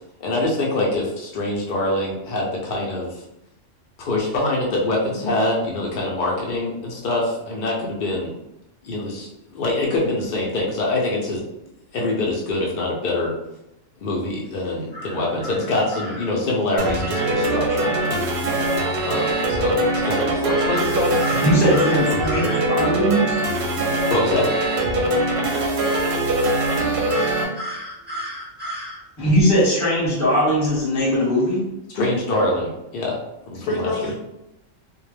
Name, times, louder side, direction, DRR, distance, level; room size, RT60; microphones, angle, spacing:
voice 1, 0.2-3.2 4.0-8.3 8.8-11.4 11.9-13.4 14.0-18.6 19.0-20.8 24.1-24.5 31.9-33.2 33.5-34.1, left 2 dB, 65° left, -3 dB, 0.5 m, -24 dB
sound 1, 14.9-16.3 20.7-22.6 27.1-29.0, equal, 15° right, 0.3 m, -33 dB
sound 2, 16.8-27.4, right 1 dB, 65° right, 0.8 m, -22 dB
voice 2, 20.7-21.5 33.5-34.2, left 3 dB, 85° left, 0 dB, 1.0 m, -27 dB
voice 3, 21.3-23.4 29.2-31.6, equal, 15° left, -5 dB, 0.7 m, -19 dB
2.1 x 2.1 x 3.1 m, 0.88 s
omnidirectional pair, 1.3 m